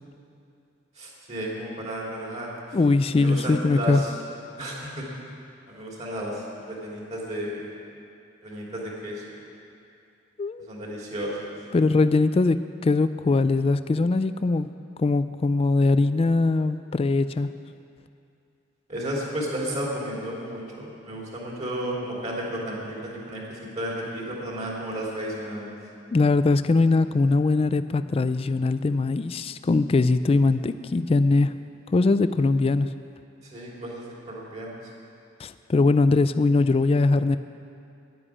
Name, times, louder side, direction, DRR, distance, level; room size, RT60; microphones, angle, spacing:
voice 1, 1.0-2.5 3.1-4.1 4.6-5.1 5.7-7.6 8.4-9.2 10.6-11.4 18.9-25.7 33.4-34.7, equal, 35° right, -4 dB, 3.0 m, -33 dB
voice 2, 2.7-4.0 10.4-10.7 11.7-14.7 15.0-17.5 26.1-31.5 31.9-32.9 35.4-37.4, left 3 dB, 30° left, 12 dB, 0.3 m, -21 dB
10.0 x 9.6 x 9.8 m, 2.6 s
head